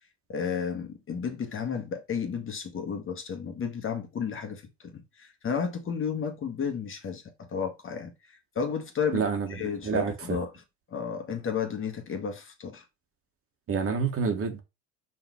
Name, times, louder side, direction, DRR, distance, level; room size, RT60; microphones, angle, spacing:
voice 1, 0.3-8.1 8.5-10.5 10.9-12.8, left 6 dB, 35° left, 1.8 m, -32 dB
voice 2, 9.1-10.4 13.7-14.6, right 5 dB, 40° right, 1.9 m, -28 dB
5.5 x 4.1 x 4.7 m
supercardioid pair, 85°, 34 cm